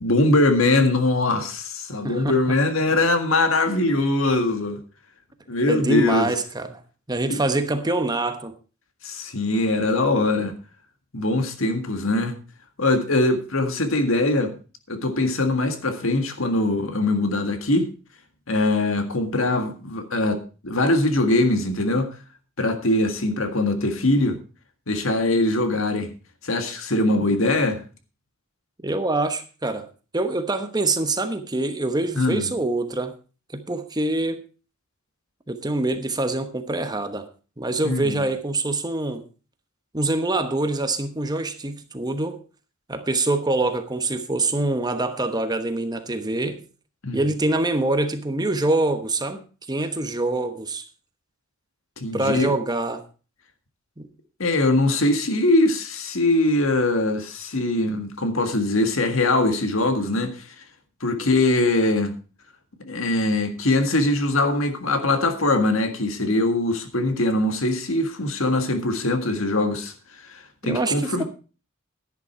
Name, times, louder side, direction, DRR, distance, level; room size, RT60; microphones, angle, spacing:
voice 1, 0.0-4.8 5.5-6.3 7.3-7.4 9.0-10.6 11.1-12.4 12.8-14.5 14.9-17.9 18.5-22.2 22.6-24.4 24.9-26.1 26.4-27.8 32.2-32.5 37.8-38.2 47.0-47.2 52.0-52.5 54.4-60.5 61.0-62.2 62.8-69.9 70.2-71.2, left 2 dB, 70° left, 1.8 m, -22 dB
voice 2, 2.0-2.4 5.7-6.8 7.1-8.5 28.8-29.9 30.1-33.1 33.5-34.4 35.5-37.3 37.6-39.2 39.9-42.4 42.9-46.6 47.1-49.4 49.7-50.8 52.1-53.0 54.0-54.1 70.7-71.2, right 2 dB, 20° right, 1.1 m, -25 dB
11.0 x 10.5 x 4.3 m
head